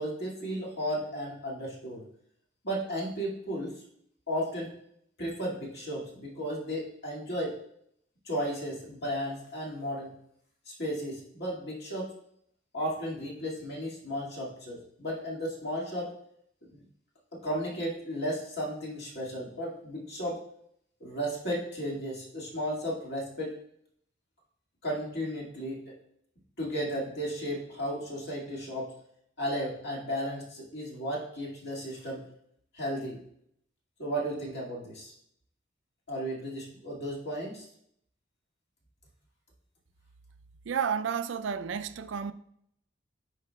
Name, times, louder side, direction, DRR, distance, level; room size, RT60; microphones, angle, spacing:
voice 1, 0.0-2.0 2.6-3.8 4.3-4.7 5.2-7.6 8.2-10.1 10.7-12.1 12.7-16.1 16.7-16.8 17.4-20.4 21.0-23.5 24.8-25.9 26.6-28.9 29.4-32.2 32.7-33.2 34.0-35.1 36.1-37.7, equal, 60° left, 2.1 m, -34 dB
voice 2, 40.7-42.3, right 7 dB, 75° right, 0.4 m, -31 dB
13.5 x 4.8 x 2.3 m
head